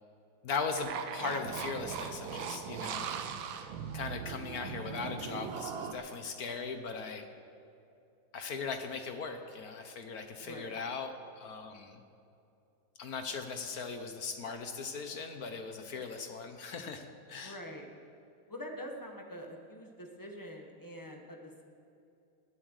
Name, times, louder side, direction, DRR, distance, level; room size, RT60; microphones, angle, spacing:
voice 1, 0.4-3.1 3.9-7.3 8.3-12.0 13.0-17.6, left 4 dB, 55° left, 6 dB, 1.2 m, -39 dB
sound 1, 0.8-5.9, right 7 dB, 75° right, 1.5 m, -39 dB
voice 2, 17.4-17.9 18.5-21.6, equal, 15° left, 2 dB, 1.0 m, -45 dB
20.0 x 7.5 x 6.5 m, 2.7 s
omnidirectional pair, 2.3 m